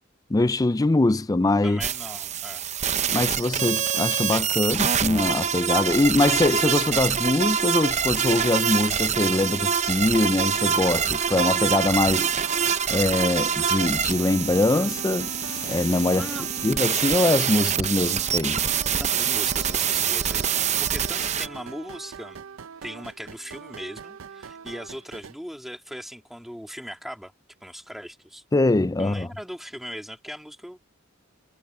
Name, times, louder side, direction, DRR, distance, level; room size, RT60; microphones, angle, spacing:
voice 1, 0.3-1.8 3.1-12.3 12.9-15.3 15.6-18.6 28.5-29.3, left 2 dB, 15° left, 0.4 m, -23 dB
voice 2, 1.6-2.7 16.1-16.5 18.9-20.5 20.8-22.4 22.8-27.3 27.6-28.4 29.0-30.9, equal, ahead, 3.2 m, -39 dB
sound 1, 1.8-21.5, right 7 dB, 35° right, 0.7 m, -25 dB
sound 2, 10.6-25.4, right 6 dB, 70° right, 0.6 m, -42 dB
sound 3, 11.5-17.1, left 7 dB, 70° left, 1.1 m, -47 dB
head